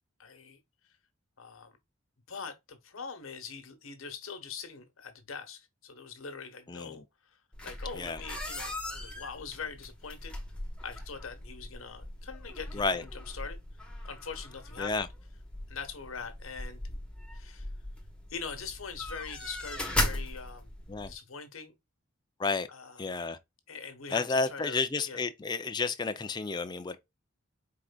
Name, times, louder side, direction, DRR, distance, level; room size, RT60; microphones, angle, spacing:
voice 1, 0.2-0.6 1.4-1.7 2.3-7.0 7.6-10.3 10.8-13.6 14.0-15.1 15.7-16.8 17.3-17.7 18.3-20.7 21.1-21.7 22.7-23.2 23.7-25.2, left 5 dB, 75° left, 1.2 m, -43 dB
voice 2, 6.7-7.0 7.9-8.2 12.7-13.0 14.8-15.1 20.9-21.1 22.4-22.7 23.0-23.4 24.1-27.0, left 4 dB, 20° left, 0.4 m, -31 dB
sound 1, 7.5-21.1, left 1 dB, 5° left, 1.0 m, -38 dB
4.7 x 3.7 x 2.2 m
head